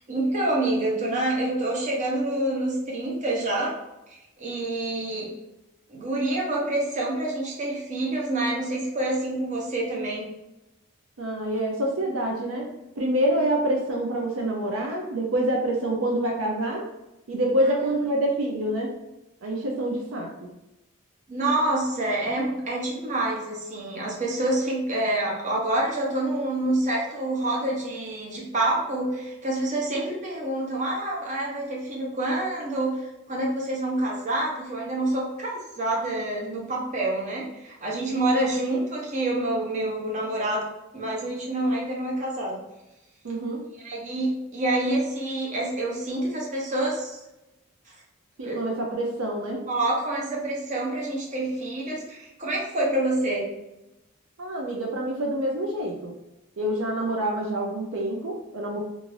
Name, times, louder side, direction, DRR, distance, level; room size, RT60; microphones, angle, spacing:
voice 1, 0.1-3.8 4.1-5.3 5.9-10.3 21.3-33.0 33.3-40.6 40.9-42.6 43.8-47.2 48.4-48.7 49.7-53.5, right 1 dB, 35° right, -2 dB, 0.7 m, -27 dB
voice 2, 11.2-12.7 13.0-16.9 17.3-18.9 19.4-20.5 43.2-43.6 48.4-49.6 54.4-56.1 56.6-58.8, right 1 dB, 65° right, 0 dB, 0.5 m, -26 dB
2.5 x 2.5 x 3.1 m, 0.95 s
head